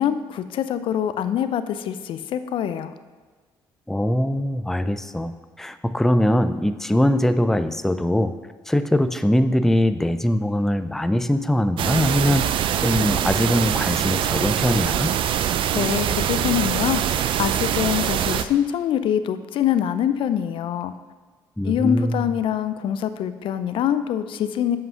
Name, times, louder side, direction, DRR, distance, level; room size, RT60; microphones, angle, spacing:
voice 1, 0.0-2.9 15.7-20.9 21.6-24.8, left 9 dB, 65° left, 12 dB, 0.5 m, -24 dB
voice 2, 3.9-5.3 5.6-8.3 8.7-12.5 12.8-15.1 21.6-22.2, left 1 dB, 5° left, 10 dB, 0.4 m, -21 dB
sound 1, 11.8-18.4, right 10 dB, 65° right, 0.4 m, -23 dB
7.6 x 5.4 x 5.5 m, 1.4 s
supercardioid pair, 75°, 9 cm